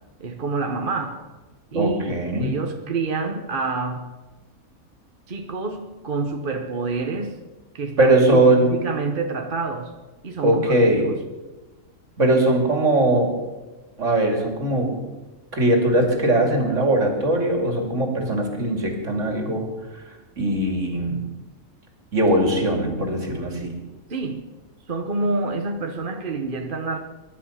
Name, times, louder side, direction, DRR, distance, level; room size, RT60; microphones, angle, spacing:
voice 1, 0.2-1.3 1.7-4.1 5.3-7.4 7.7-9.9 10.2-11.2 24.1-24.4 24.9-27.0, right 4 dB, 40° right, 4 dB, 1.2 m, -28 dB
voice 2, 1.7-2.6 8.0-8.8 10.4-11.1 12.2-13.4 14.0-15.0 15.5-19.7 19.9-20.0 20.4-21.2 22.1-23.8, right 1 dB, 60° right, 2 dB, 3.0 m, -20 dB
22.0 x 11.0 x 5.7 m, 1.2 s
omnidirectional pair, 1.4 m